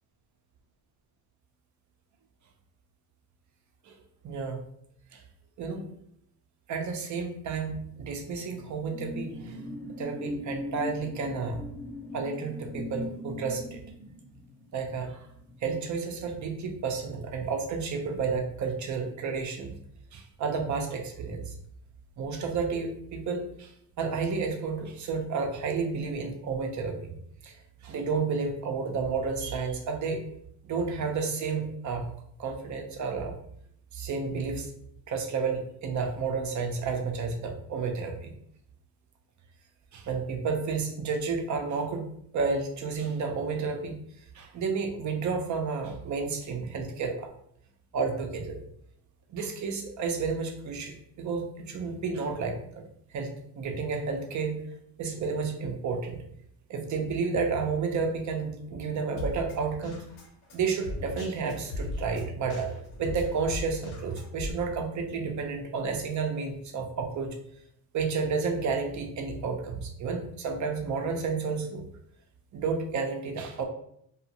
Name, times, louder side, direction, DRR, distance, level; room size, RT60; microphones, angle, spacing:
voice 1, 4.2-4.6 5.1-5.2 5.6-5.9 6.7-9.7 10.0-11.6 12.1-13.8 14.7-15.3 15.6-19.7 20.1-21.5 22.2-27.1 27.4-30.2 30.6-32.0 32.4-33.4 33.9-34.7 35.1-38.3 39.9-42.1 42.3-43.9 44.3-47.3 47.9-48.6 49.3-52.8 53.1-54.6 55.0-56.2 56.7-60.0 60.5-62.7 63.0-67.4 67.9-71.8 72.5-73.6, right 5 dB, 40° right, 4 dB, 0.6 m, -31 dB
sound 1, 8.0-17.0 17.3-17.6, left 2 dB, 5° left, 0.3 m, -40 dB
Drum kit, 59.2-64.5, left 1 dB, 90° left, 0.9 m, -38 dB
2.6 x 2.4 x 2.8 m, 0.70 s
cardioid pair, 110°, 44 cm